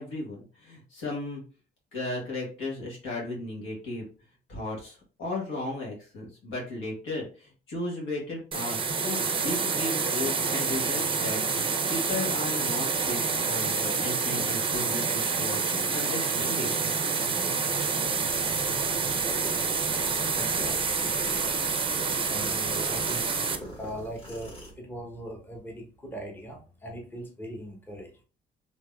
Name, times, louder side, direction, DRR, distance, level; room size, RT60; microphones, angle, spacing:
voice 1, 0.0-1.4 1.9-4.0 4.5-16.8, left 2 dB, 80° left, -3 dB, 1.5 m, -35 dB
sound 1, 8.5-23.6, right 5 dB, 25° right, 0.5 m, -28 dB
sound 2, 17.3-24.7, equal, 30° left, 1.7 m, -44 dB
voice 2, 20.2-21.8 22.2-23.3 23.8-28.1, right 1 dB, 10° left, 1 dB, 0.9 m, -40 dB
3.5 x 2.9 x 2.3 m, 0.37 s
cardioid pair, 90°, 20 cm